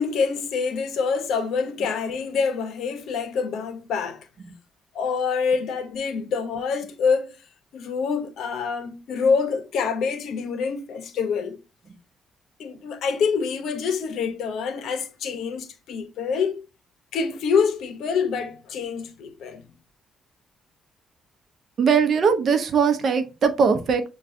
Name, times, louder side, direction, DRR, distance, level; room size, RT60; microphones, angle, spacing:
voice 1, 0.0-4.3 4.9-7.4 7.7-11.6 12.6-16.7 17.1-19.7, left 5 dB, 75° left, 0.6 m, -26 dB
voice 2, 21.8-24.0, right 6 dB, 55° right, 0.7 m, -20 dB
6.6 x 2.3 x 2.5 m
cardioid pair, 90°, 0 cm